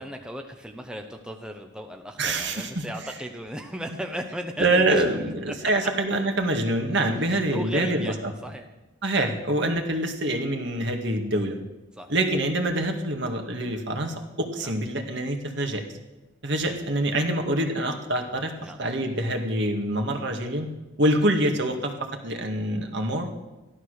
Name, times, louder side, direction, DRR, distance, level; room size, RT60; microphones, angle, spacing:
voice 1, 0.0-5.7 7.5-8.7 11.9-12.2 14.6-14.7 18.6-18.8, equal, 5° right, 3 dB, 0.8 m, -36 dB
voice 2, 2.2-2.8 4.6-8.3 9.0-11.6 12.1-15.8 16.4-18.5 18.8-20.7 21.0-21.9 22.2-23.3, right 1 dB, 60° right, 4 dB, 2.0 m, -25 dB
14.5 x 12.0 x 6.6 m, 1.1 s
head